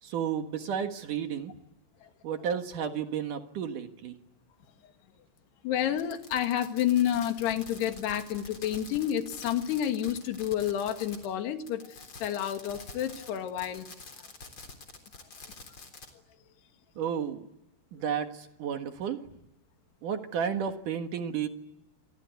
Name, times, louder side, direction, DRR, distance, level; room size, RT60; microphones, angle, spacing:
voice 1, 0.0-1.5 2.2-4.2 17.0-17.5 17.9-19.2 20.0-21.5, right 8 dB, 60° right, 6 dB, 2.4 m, -32 dB
voice 2, 5.6-13.9, left 10 dB, 65° left, 6 dB, 3.8 m, -30 dB
Fireworks, 5.9-11.3 11.6-16.1, left 3 dB, 30° left, 3.9 m, -47 dB
28.0 x 23.0 x 9.3 m, 0.88 s
omnidirectional pair, 5.4 m